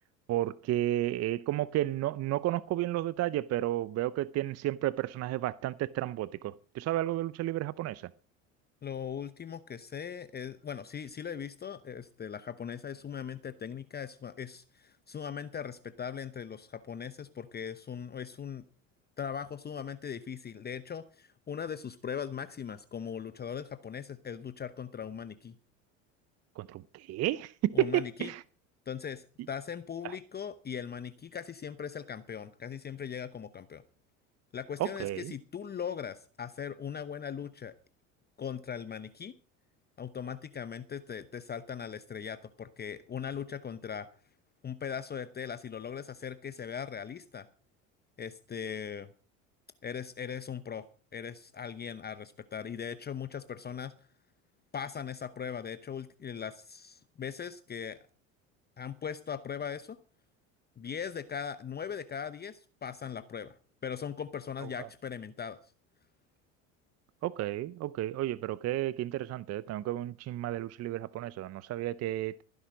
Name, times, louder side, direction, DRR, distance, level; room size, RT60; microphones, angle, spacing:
voice 1, 0.3-8.1 26.6-28.4 30.0-30.2 34.8-35.3 64.6-64.9 67.2-72.4, right 14 dB, 40° right, 0.6 m, -32 dB
voice 2, 8.8-18.6 19.2-25.6 27.7-28.3 28.9-33.8 34.5-37.7 38.4-39.4 40.0-44.1 44.6-47.5 48.2-49.1 49.8-50.9 51.1-53.9 54.7-58.0 58.8-60.0 60.8-63.6 63.8-65.7, left 7 dB, 25° left, 0.8 m, -39 dB
15.5 x 10.5 x 5.1 m
hypercardioid pair, 85°, 38 cm